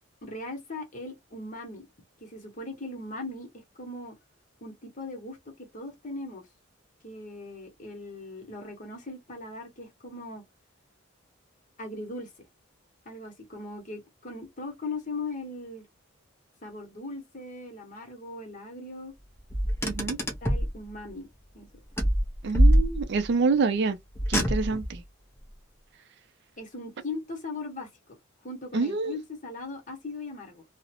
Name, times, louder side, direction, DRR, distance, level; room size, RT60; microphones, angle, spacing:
voice 1, 0.2-1.9 2.2-4.1 4.6-6.5 7.0-10.4 11.8-12.3 13.0-15.9 16.6-19.1 20.4-21.3 21.5-21.7 26.6-28.2 28.4-30.6, left 2 dB, 40° left, 0.9 m, -39 dB
Car, 19.5-20.7 22.0-23.3 24.1-25.0, equal, 10° left, 0.5 m, -23 dB
voice 2, 19.8-20.2 22.4-24.0 24.3-25.0 28.7-29.1, right 4 dB, 55° right, 0.4 m, -26 dB
2.6 x 2.0 x 2.7 m
head